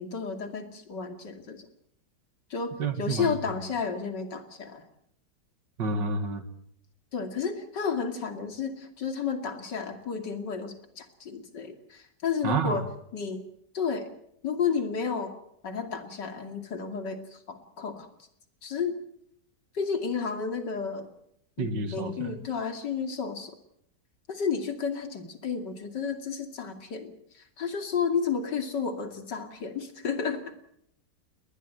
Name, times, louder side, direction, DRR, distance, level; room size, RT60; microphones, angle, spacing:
voice 1, 0.0-1.7 2.5-2.7 3.0-4.8 7.1-12.9 13.1-13.4 13.7-14.1 14.4-15.3 15.6-18.1 18.6-19.0 19.7-21.1 21.6-23.5 24.3-30.4, left 6 dB, 75° left, 7 dB, 3.1 m, -32 dB
voice 2, 2.8-3.4 5.8-6.4 12.4-12.8 21.6-22.4, right 4 dB, 80° right, 9 dB, 2.5 m, -29 dB
21.0 x 20.0 x 8.0 m, 0.73 s
omnidirectional pair, 1.9 m